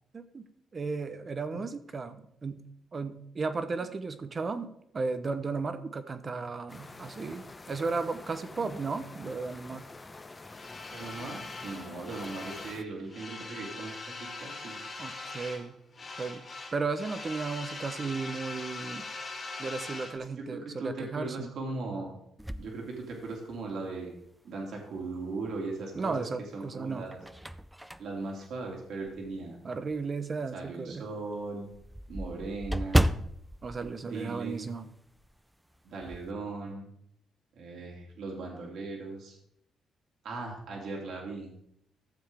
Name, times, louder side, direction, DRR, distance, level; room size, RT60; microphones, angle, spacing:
voice 1, 0.1-0.5 0.7-2.7 2.9-9.8 15.0-15.7 16.2-16.4 16.7-19.0 19.6-21.5 25.9-27.0 29.6-31.1 33.6-34.9, right 4 dB, 35° right, 10 dB, 0.9 m, -35 dB
sound 1, 6.7-12.8, left 3 dB, 25° left, 0.8 m, -47 dB
sound 2, 10.5-12.8 13.1-15.7 15.9-20.2, left 3 dB, 45° left, 2.9 m, -41 dB
voice 2, 10.9-14.8 20.4-22.2 22.6-24.1 24.4-26.3 26.5-27.2 28.0-29.6 30.5-31.7 32.1-33.1 34.0-34.7 35.8-36.9 37.6-39.4 40.2-41.5, right 3 dB, 70° right, 0 dB, 2.7 m, -38 dB
sound 3, 22.4-23.7 24.3-24.4 25.8-26.3 26.8-29.5 29.9-30.0 30.4-30.5 30.8-30.9 31.1-34.9 35.2-35.4 35.7-36.3, right 1 dB, 5° right, 0.5 m, -33 dB
14.0 x 7.2 x 3.5 m, 0.74 s
cardioid pair, 90°, 0 cm